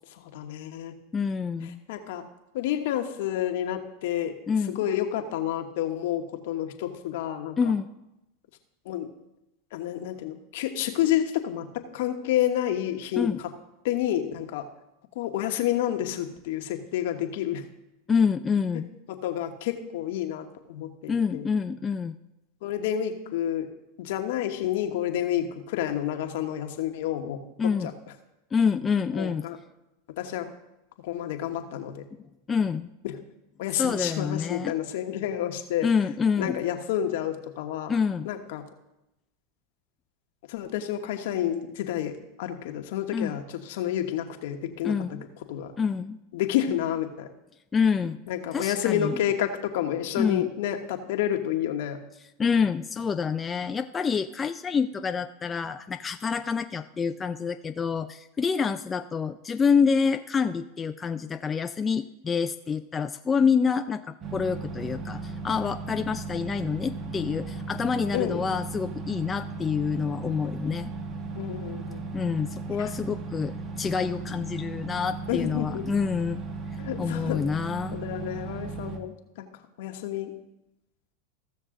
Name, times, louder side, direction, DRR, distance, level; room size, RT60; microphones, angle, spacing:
voice 1, 0.1-0.9 1.9-2.2 2.5-4.3 4.7-7.7 8.8-9.1 9.7-13.3 13.8-14.6 15.1-17.6 19.1-21.4 22.6-23.7 24.0-27.4 27.8-27.9 29.1-29.6 30.2-30.5 31.0-32.0 33.0-33.2 33.6-35.9 36.4-37.9 38.2-38.6 40.5-45.2 45.5-45.7 46.3-47.3 48.3-52.0 68.1-68.4 71.3-72.0 72.8-72.9 75.3-75.9 76.8-77.4 77.9-79.5 79.8-80.3, left 11 dB, 70° left, 5 dB, 1.2 m, -29 dB
voice 2, 1.1-1.8 4.5-4.8 7.6-7.9 13.2-13.4 18.1-18.9 21.1-22.1 27.6-27.9 28.5-29.5 32.5-32.9 33.8-34.7 35.8-36.6 37.9-38.3 43.1-43.4 44.8-45.2 45.8-46.2 47.7-48.2 48.5-49.2 50.2-50.5 52.4-70.9 72.1-76.4 77.0-78.0, left 6 dB, 20° left, 8 dB, 0.4 m, -27 dB
sound 1, 64.2-79.0, right 4 dB, 35° right, 1.3 m, -36 dB
15.0 x 6.5 x 3.8 m, 0.91 s
hypercardioid pair, 110°, 0 cm